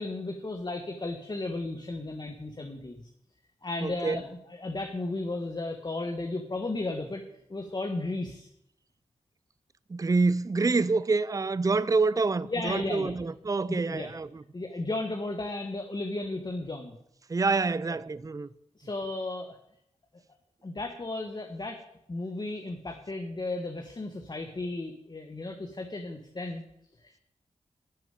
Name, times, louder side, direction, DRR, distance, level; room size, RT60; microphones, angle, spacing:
voice 1, 0.0-3.1 3.6-7.2 7.5-8.5 12.5-13.2 13.7-14.1 14.5-17.0 18.8-19.6 20.6-21.8 22.1-26.6 27.0-27.2, left 2 dB, 35° left, 1.6 m, -34 dB
voice 2, 3.8-4.2 9.9-14.4 17.3-18.5, right 3 dB, 30° right, 0.5 m, -27 dB
11.0 x 7.1 x 9.2 m
cardioid pair, 60°, 12 cm